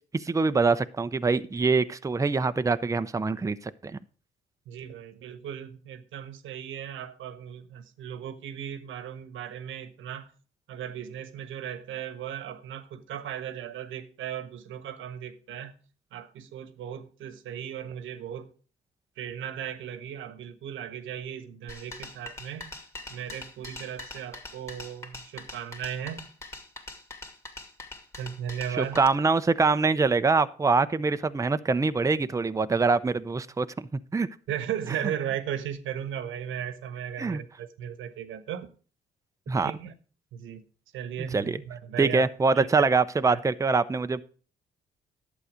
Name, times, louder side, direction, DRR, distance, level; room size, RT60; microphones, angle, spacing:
voice 1, 0.1-4.0 28.8-34.3 37.2-37.4 39.5-39.7 41.3-41.6 42.0-44.2, right 4 dB, 15° right, 0.6 m, -24 dB
voice 2, 4.7-10.3 10.7-15.7 16.1-18.5 19.2-22.7 23.1-26.2 28.2-29.0 34.5-38.7 39.6-39.9 40.3-40.6 40.9-42.3 42.5-42.9 43.3-43.4, right 9 dB, 80° right, 1.3 m, -36 dB
sound 1, 21.7-29.1, left 2 dB, 15° left, 2.1 m, -43 dB
11.5 x 8.0 x 5.0 m
cardioid pair, 90°, 20 cm